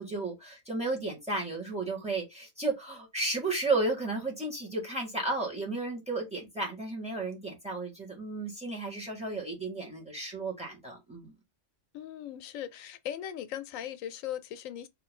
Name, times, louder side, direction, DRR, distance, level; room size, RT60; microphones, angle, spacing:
voice 1, 0.0-11.3, right 2 dB, 5° right, 1.7 m, -33 dB
voice 2, 11.9-14.9, left 10 dB, 85° left, 1.0 m, -39 dB
4.4 x 3.0 x 3.7 m
omnidirectional pair, 1.4 m